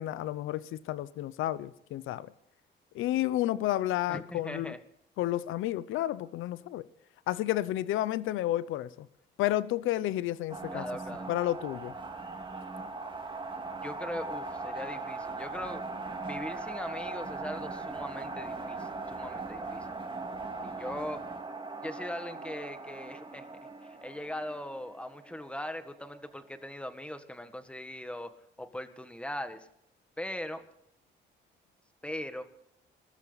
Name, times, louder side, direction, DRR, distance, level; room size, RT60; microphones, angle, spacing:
voice 1, 0.0-2.3 2.9-4.8 5.2-6.9 7.3-9.1 9.4-10.8 11.3-11.9, left 14 dB, 90° left, 0.7 m, -31 dB
voice 2, 4.1-4.8 10.7-11.3 13.8-15.8 16.3-19.9 20.6-21.2 21.8-23.4 24.0-28.3 28.6-29.7 30.2-30.6 32.0-32.4, left 1 dB, 5° left, 1.7 m, -40 dB
sound 1, 10.5-26.3, right 3 dB, 25° right, 2.1 m, -40 dB
21.5 x 13.5 x 4.1 m
cardioid pair, 90°, 20 cm